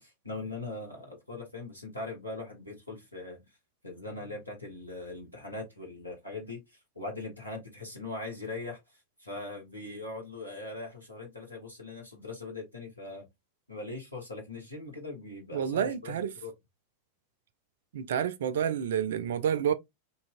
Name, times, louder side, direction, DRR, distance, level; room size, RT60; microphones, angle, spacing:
voice 1, 0.0-3.4 3.8-6.6 6.9-8.8 9.2-13.2 13.7-16.5, left 2 dB, 85° left, 1.3 m, -40 dB
voice 2, 15.5-16.3 17.9-19.7, right 8 dB, 60° right, 0.4 m, -29 dB
2.7 x 2.7 x 2.5 m
figure-of-eight pair, 90°, 0 cm